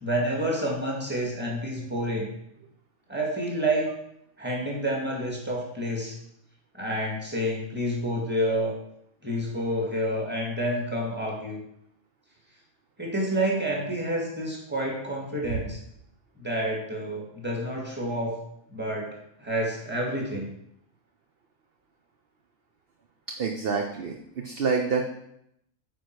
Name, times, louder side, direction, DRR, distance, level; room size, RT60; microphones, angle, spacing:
voice 1, 0.0-2.3 3.1-3.9 4.4-6.1 6.7-8.7 9.2-11.6 13.0-15.8 16.4-18.4 18.7-20.5, right 1 dB, 5° right, -2 dB, 1.9 m, -29 dB
voice 2, 23.4-25.0, right 5 dB, 50° right, 3 dB, 0.8 m, -27 dB
9.1 x 4.6 x 4.6 m, 0.75 s
omnidirectional pair, 1.5 m